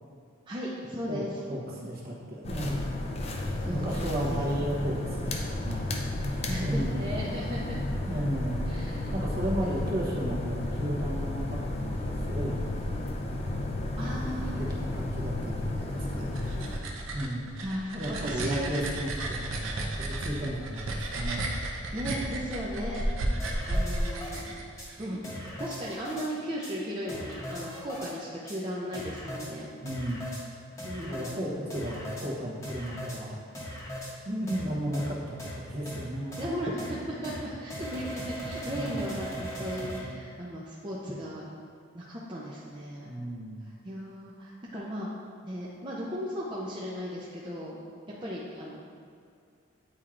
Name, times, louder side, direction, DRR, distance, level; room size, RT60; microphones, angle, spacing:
voice 1, 0.5-1.3 3.6-4.5 6.5-7.8 8.7-9.7 14.0-14.6 17.6-18.8 21.9-23.0 23.7-24.6 25.0-25.3 25.6-29.7 30.8-31.4 36.4-41.4 41.9-43.1 43.8-45.1 45.4-47.8 48.2-48.8, equal, 25° right, -6 dB, 0.5 m, -36 dB
voice 2, 1.5-2.8 3.7-5.9 6.2-7.0 8.1-8.7 9.1-12.6 13.3-13.7 14.6-16.3 16.6-16.7 17.1-17.5 18.0-21.8 29.8-30.2 31.0-33.4 34.2-36.4 38.7-39.0 43.0-43.6, right 1 dB, 45° right, -4 dB, 1.0 m, -34 dB
sound 1, 2.4-16.8, left 1 dB, 30° left, 0.4 m, -32 dB
sound 2, 16.1-25.1, right 1 dB, 75° right, 0.6 m, -33 dB
sound 3, 23.4-24.4 24.8-24.9 25.2-26.3 26.6-26.7 27.1-28.1 28.5-28.6 28.9-29.5 29.9-30.4 30.8-31.3 31.7-32.3 32.6-33.2 33.5-34.1 34.5-34.6 34.9-35.1 35.4-35.5 35.9-36.0 36.3-36.4 36.8-36.9 37.2-37.4 37.7-40.0, equal, 15° left, 0.9 m, -39 dB
8.8 x 4.4 x 2.5 m, 2.3 s
head